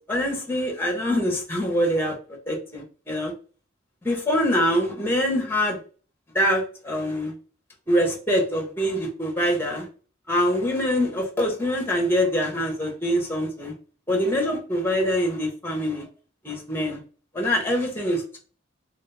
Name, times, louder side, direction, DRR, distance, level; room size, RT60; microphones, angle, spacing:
voice 1, 0.1-2.1 2.5-3.3 4.0-5.8 6.3-7.3 7.9-9.9 10.3-13.7 14.1-16.1 16.4-17.0 17.3-18.4, equal, 10° left, 1 dB, 0.9 m, -24 dB
3.0 x 2.5 x 3.3 m, 0.38 s
head